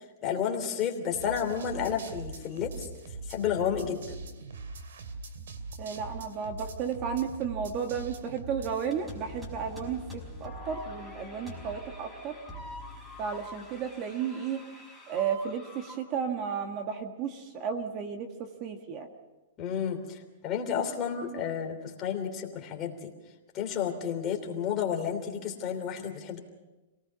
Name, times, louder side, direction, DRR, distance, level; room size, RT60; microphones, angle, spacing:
voice 1, 0.2-2.7 3.3-4.2 19.6-23.1 23.5-26.4, left 8 dB, 25° left, 2 dB, 3.1 m, -31 dB
sound 1, 1.1-8.9, right 3 dB, 90° right, 2.5 m, -42 dB
voice 2, 5.8-12.4 13.2-14.6 15.1-18.3 18.6-19.1, right 7 dB, 35° right, 5 dB, 1.7 m, -33 dB
sound 2, 8.8-16.0, left 1 dB, 10° right, 5.2 m, -44 dB
27.5 x 18.5 x 5.8 m, 1.1 s
hypercardioid pair, 155°, 0 cm